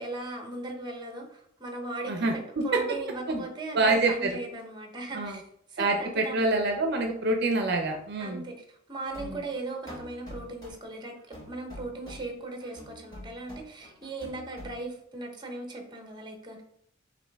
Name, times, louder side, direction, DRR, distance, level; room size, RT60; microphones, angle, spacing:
voice 1, 0.0-5.4 5.7-6.5 8.2-16.6, right 2 dB, 25° right, 3 dB, 0.9 m, -38 dB
voice 2, 2.1-2.6 3.3-3.4 3.7-4.3 5.1-5.4 5.8-8.4 9.2-9.4, right 2 dB, 60° right, 3 dB, 0.6 m, -26 dB
sound 1, 9.1-10.8 11.2-12.4 12.6-14.8, left 1 dB, 20° left, 1.9 m, -45 dB
5.4 x 2.7 x 3.4 m, 0.70 s
head